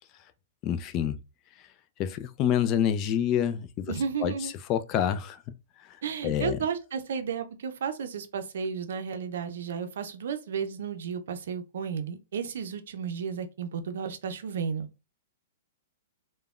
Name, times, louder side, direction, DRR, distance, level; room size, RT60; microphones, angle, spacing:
voice 1, 0.6-1.2 2.0-3.9 4.2-4.3 4.7-5.4 6.2-6.6, left 9 dB, 35° left, 0.3 m, -27 dB
voice 2, 3.9-4.5 6.0-14.9, right 6 dB, 70° right, 0.5 m, -33 dB
3.4 x 2.1 x 2.4 m
hypercardioid pair, 125°, 0 cm